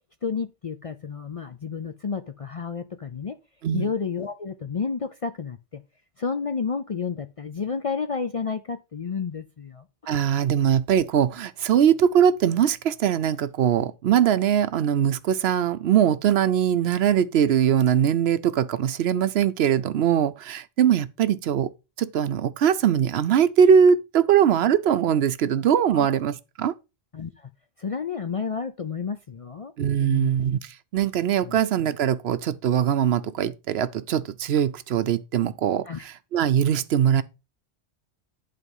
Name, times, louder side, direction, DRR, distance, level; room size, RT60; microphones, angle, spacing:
voice 1, 0.2-3.4 3.7-5.8 6.2-9.9 25.9-26.1 27.1-27.5 27.8-29.7 30.0-30.4 31.4-31.6 35.9-36.1, left 5 dB, 45° left, 0.4 m, -31 dB
voice 2, 10.1-21.7 22.0-26.7 29.8-37.2, right 9 dB, 70° right, 0.8 m, -21 dB
11.0 x 3.8 x 5.4 m
omnidirectional pair, 1.1 m